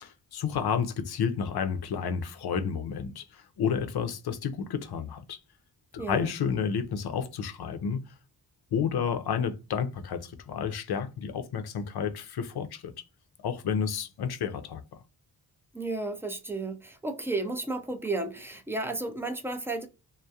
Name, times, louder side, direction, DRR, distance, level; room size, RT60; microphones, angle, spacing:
voice 1, 0.3-5.4 5.9-8.0 8.7-12.9 13.4-14.8, left 7 dB, 70° left, 0.5 m, -30 dB
voice 2, 6.0-6.3 15.7-19.9, right 2 dB, 5° right, 0.3 m, -33 dB
2.3 x 2.0 x 2.6 m
wide cardioid pair, 160°, 41 cm